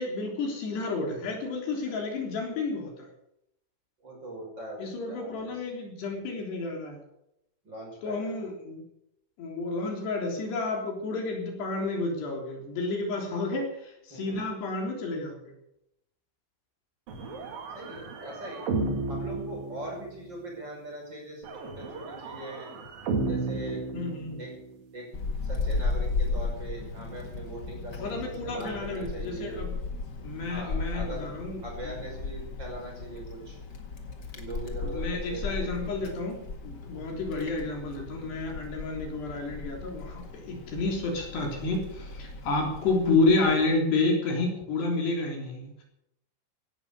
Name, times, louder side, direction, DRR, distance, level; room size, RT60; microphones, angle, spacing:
voice 1, 0.0-3.1 4.8-7.0 8.0-8.8 9.4-15.5 23.9-24.4 28.0-29.8 30.2-32.0 34.8-45.7, left 3 dB, 70° left, 1 dB, 5.5 m, -30 dB
voice 2, 4.0-5.6 7.6-8.4 14.1-14.4 17.7-18.7 19.1-22.7 23.2-23.8 24.4-24.5 24.9-25.1 25.4-29.6 30.5-31.3 31.6-33.6 34.4-35.9 37.3-37.5, right 1 dB, 25° right, -1 dB, 6.1 m, -41 dB
sound 1, 17.1-20.3 21.4-24.7, right 3 dB, 60° right, 3.7 m, -34 dB
Wind, 25.1-43.6, left 3 dB, 55° left, 1.1 m, -36 dB
17.0 x 11.5 x 6.8 m, 0.79 s
omnidirectional pair, 4.9 m